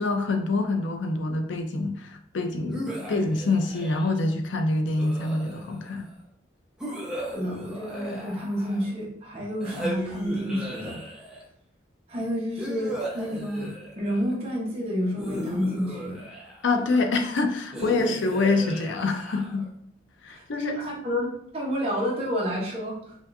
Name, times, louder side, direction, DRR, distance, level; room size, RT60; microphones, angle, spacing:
voice 1, 0.0-6.1 16.6-19.7 20.2-20.7, left 3 dB, 85° left, 5 dB, 0.5 m, -26 dB
sound 1, 2.7-4.2 5.0-5.9 6.8-9.0 9.6-11.5 12.6-14.3 15.2-16.8 17.7-19.7, right 1 dB, 5° right, 0.8 m, -36 dB
voice 2, 7.3-11.0 12.1-16.2 20.3-23.1, equal, 35° right, -5 dB, 1.0 m, -30 dB
4.9 x 2.5 x 2.6 m, 0.69 s
head